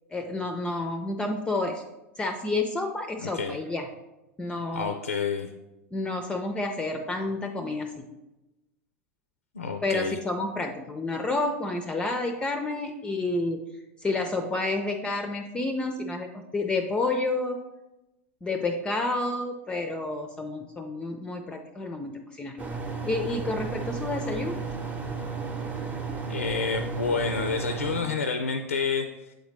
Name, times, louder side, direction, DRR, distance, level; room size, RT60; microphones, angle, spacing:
voice 1, 0.1-1.8 2.2-3.9 4.4-5.0 5.9-8.1 9.8-13.6 14.0-17.6 18.4-22.6 23.1-24.6, left 2 dB, 15° left, 5 dB, 0.4 m, -30 dB
voice 2, 3.2-3.6 4.7-5.5 9.5-10.2 26.3-29.3, left 5 dB, 85° left, 7 dB, 0.4 m, -29 dB
sound 1, 22.6-28.0, right 5 dB, 20° right, 0.7 m, -33 dB
7.9 x 3.9 x 3.2 m, 0.99 s
figure-of-eight pair, 90°, 7 cm